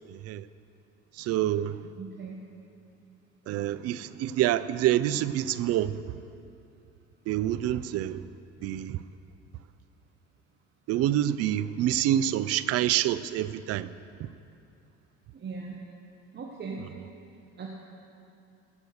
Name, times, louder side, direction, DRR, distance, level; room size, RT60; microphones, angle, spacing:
voice 1, 0.1-0.4 1.2-1.8 3.5-6.0 7.3-8.2 8.6-9.0 10.9-13.9 16.8-16.9, right 12 dB, 55° right, 0.5 m, -27 dB
voice 2, 2.0-2.3 15.3-15.8 16.3-16.8 17.6-17.7, right 5 dB, 35° right, 1.4 m, -38 dB
15.5 x 6.3 x 6.5 m
supercardioid pair, 90°, 29 cm